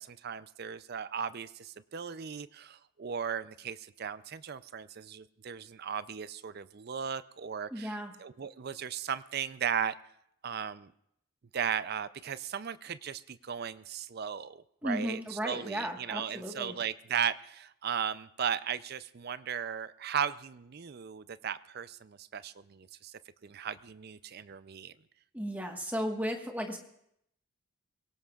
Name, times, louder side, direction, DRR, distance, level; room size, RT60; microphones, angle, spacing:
voice 1, 0.0-7.9 8.2-9.9 10.4-10.9 11.5-14.6 14.8-22.8 23.4-24.9, right 8 dB, 45° right, 15 dB, 0.4 m, -36 dB
voice 2, 7.7-8.1 14.8-16.7 25.3-26.8, equal, 5° right, 2 dB, 1.3 m, -35 dB
23.5 x 17.0 x 2.4 m, 0.73 s
head